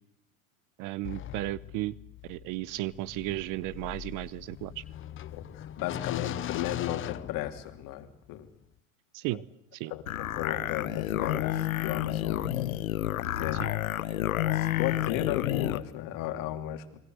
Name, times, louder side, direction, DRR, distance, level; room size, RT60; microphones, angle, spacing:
voice 1, 0.8-1.9 2.2-4.8 9.1-9.4 9.7-9.9 13.6-13.7, right 18 dB, 50° right, 20 dB, 1.0 m, -34 dB
sound 1, 1.0-8.0, left 12 dB, 30° left, 0.9 m, -40 dB
voice 2, 5.3-8.5 9.9-12.5 13.3-13.6 14.5-16.8, left 12 dB, 50° left, 7 dB, 3.1 m, -35 dB
sound 2, 10.1-15.8, left 13 dB, 85° left, 1.2 m, -30 dB
28.0 x 22.5 x 8.0 m, 0.75 s
hypercardioid pair, 100°, 40 cm